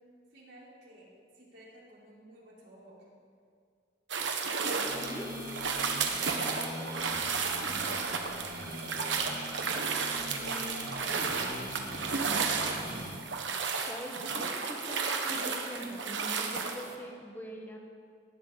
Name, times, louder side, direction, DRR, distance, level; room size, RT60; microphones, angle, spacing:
voice 1, 0.3-3.1 5.8-9.6 10.1-11.3, equal, 70° right, -6 dB, 4.1 m, -51 dB
sound 1, 4.1-16.9, right 5 dB, 90° right, 1.2 m, -33 dB
sound 2, 4.9-13.1, equal, 50° right, 2.2 m, -42 dB
voice 2, 5.0-5.3 13.8-17.8, equal, 10° left, 0 dB, 1.4 m, -43 dB
17.5 x 11.5 x 4.1 m, 2.2 s
head